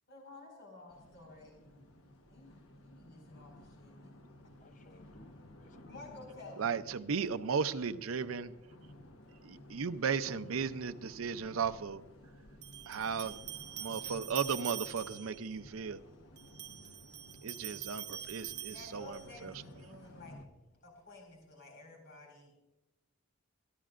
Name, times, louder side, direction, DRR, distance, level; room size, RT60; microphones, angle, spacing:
voice 1, 0.1-1.6 2.3-4.1 4.9-5.0 5.9-6.8 18.7-22.5, left 2 dB, 55° left, 4.8 m, -53 dB
sound 1, 0.9-20.5, left 1 dB, 85° left, 1.3 m, -55 dB
voice 2, 4.6-6.1 9.6-9.8 16.6-17.7, left 2 dB, 35° left, 0.6 m, -63 dB
voice 3, 6.6-8.5 9.4-12.0 12.9-13.4 13.7-16.0 17.4-19.5, right 6 dB, 75° right, 0.6 m, -35 dB
sound 2, 11.3-11.4 12.6-15.4 16.4-19.4, right 12 dB, 55° right, 0.8 m, -44 dB
26.5 x 12.0 x 2.5 m
head